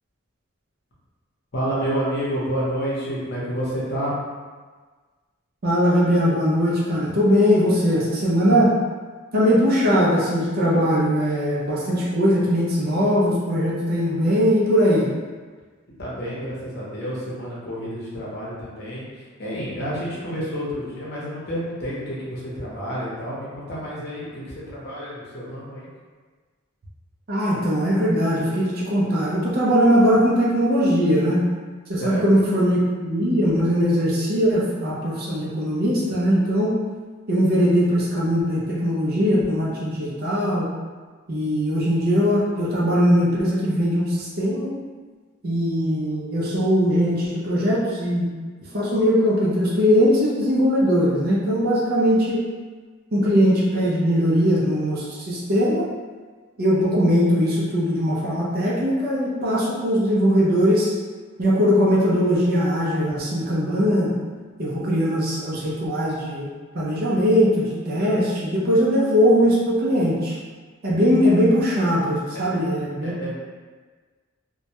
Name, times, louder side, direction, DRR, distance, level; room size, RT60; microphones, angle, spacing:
voice 1, 1.5-4.1 16.0-25.9 32.0-32.2 72.3-72.4 73.0-73.4, equal, 50° left, -7 dB, 0.8 m, -29 dB
voice 2, 5.6-8.8 9.3-15.1 27.3-31.5 31.9-36.8 37.3-40.7 41.3-44.7 45.4-48.3 48.7-52.5 53.1-55.8 56.6-60.9 61.4-64.1 64.6-66.5 66.7-70.4 70.8-73.1, equal, 50° right, -6 dB, 0.5 m, -20 dB
2.2 x 2.1 x 2.8 m, 1.4 s
head